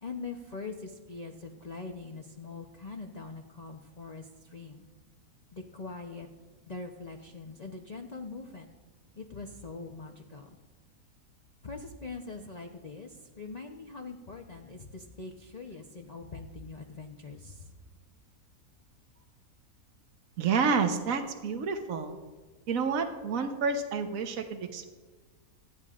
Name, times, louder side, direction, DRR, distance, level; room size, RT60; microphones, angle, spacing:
voice 1, 0.0-4.8 5.5-6.3 6.7-8.7 9.2-10.6 11.6-17.7, left 3 dB, 35° left, 2 dB, 0.8 m, -42 dB
voice 2, 20.4-22.2 22.7-24.9, right 5 dB, 70° right, 6 dB, 1.4 m, -29 dB
25.0 x 10.5 x 2.5 m, 1.3 s
omnidirectional pair, 1.5 m